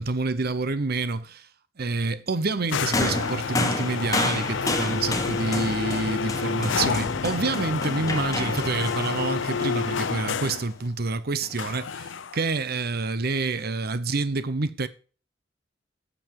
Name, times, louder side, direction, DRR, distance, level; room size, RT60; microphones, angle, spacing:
voice 1, 0.0-1.5 1.8-14.9, right 3 dB, 55° right, 0.8 m, -28 dB
sound 1, 2.7-10.7 11.6-12.5, left 5 dB, 80° left, 0.6 m, -29 dB
sound 2, 2.9-10.4 11.4-11.6, left 2 dB, 20° left, 1.2 m, -31 dB
11.5 x 7.1 x 4.7 m
head